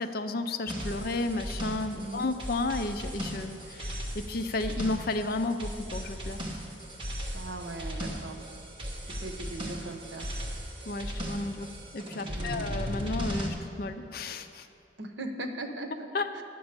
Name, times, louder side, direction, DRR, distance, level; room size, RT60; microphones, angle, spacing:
voice 1, 0.0-6.4 10.9-14.7 16.1-16.4, left 2 dB, 50° left, 9 dB, 0.5 m, -33 dB
sound 1, 0.7-13.5, equal, 25° right, 1.2 m, -37 dB
voice 2, 1.9-2.3 7.3-8.4 9.1-10.3 12.3-12.8 15.0-16.1 16.3-16.4, right 2 dB, 75° right, 6 dB, 0.9 m, -39 dB
9.9 x 7.0 x 6.7 m, 2.6 s
head